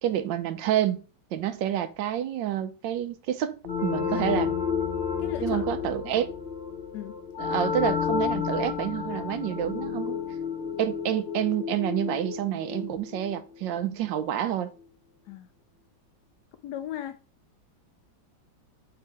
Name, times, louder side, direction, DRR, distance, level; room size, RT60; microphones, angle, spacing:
voice 1, 0.0-1.0 1.3-4.5 5.4-6.3 7.4-10.2 10.8-14.7, right 11 dB, 80° right, 1.3 m, -28 dB
sound 1, 3.6-14.1, left 7 dB, 45° left, 0.8 m, -31 dB
voice 2, 5.2-5.6 6.0-6.2 6.9-7.2 15.3-15.5 16.5-17.2, left 11 dB, 70° left, 1.0 m, -37 dB
6.5 x 3.5 x 4.5 m
omnidirectional pair, 2.0 m